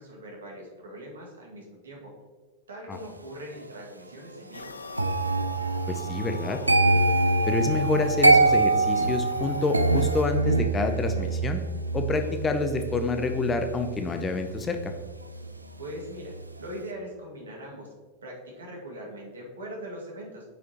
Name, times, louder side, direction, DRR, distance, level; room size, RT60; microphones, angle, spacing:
voice 1, 0.0-2.1 2.7-4.7 15.8-17.9 18.2-20.5, equal, 70° right, -1 dB, 1.9 m, -41 dB
sound 1, 4.5-10.2, left 4 dB, 75° left, 0.4 m, -40 dB
sound 2, 5.0-15.9 16.2-16.6, right 2 dB, 85° right, 0.5 m, -25 dB
voice 2, 5.9-6.6 7.5-11.6 11.9-14.9, left 3 dB, 20° left, 7 dB, 0.6 m, -28 dB
8.6 x 6.1 x 2.9 m, 1.4 s
figure-of-eight pair, 90°, 0 cm